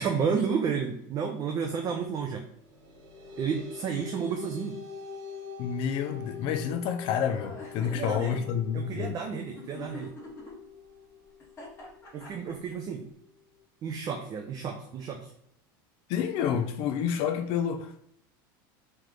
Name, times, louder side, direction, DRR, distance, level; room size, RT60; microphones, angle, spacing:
voice 1, 0.0-2.5 3.4-4.8 7.8-8.5 8.7-10.1 12.1-13.0 13.8-15.3, right 6 dB, 35° right, 0.5 m, -31 dB
sound 1, 2.6-13.6, left 6 dB, 60° right, 1.4 m, -45 dB
voice 2, 5.6-9.1 16.1-18.1, left 8 dB, 50° left, 0.4 m, -29 dB
sound 2, 7.3-8.0 9.6-10.5 11.4-12.7, left 2 dB, 25° left, 1.4 m, -44 dB
3.2 x 3.0 x 3.7 m
supercardioid pair, 130°, 11 cm